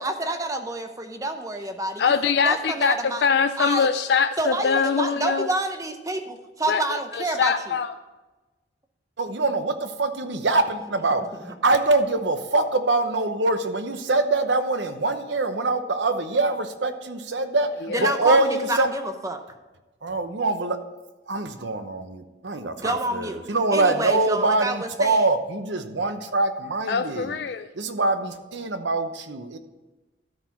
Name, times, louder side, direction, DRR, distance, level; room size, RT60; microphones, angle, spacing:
voice 1, 0.0-3.2 3.6-3.9 4.4-7.7 17.9-19.4 22.8-23.4 23.7-25.3, right 2 dB, 20° right, 6 dB, 0.7 m, -28 dB
voice 2, 2.0-2.9 3.2-5.5 6.7-7.9 17.9-18.2 26.9-27.7, left 5 dB, 65° left, 10 dB, 0.4 m, -23 dB
voice 3, 9.2-17.7 18.0-18.9 20.0-20.8 21.3-27.3 27.8-29.6, right 2 dB, 75° right, 8 dB, 0.9 m, -24 dB
13.0 x 4.9 x 5.8 m, 1.2 s
head